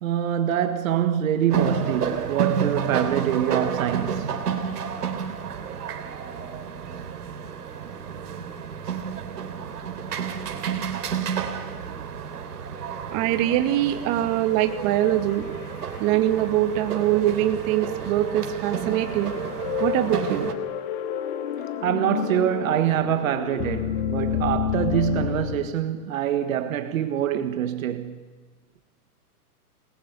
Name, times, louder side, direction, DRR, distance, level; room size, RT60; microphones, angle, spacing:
voice 1, 0.0-4.3 21.8-28.2, right 10 dB, 60° right, 1.6 m, -25 dB
sound 1, 1.5-20.5, right 7 dB, 85° right, 3.6 m, -30 dB
voice 2, 13.1-15.5 16.0-19.3 19.8-20.5, right 13 dB, 35° right, 2.3 m, -23 dB
sound 2, 14.9-16.4 16.8-16.9 18.1-25.6, left 9 dB, 35° left, 1.9 m, -30 dB
28.0 x 20.5 x 9.5 m
hypercardioid pair, 155°, 46 cm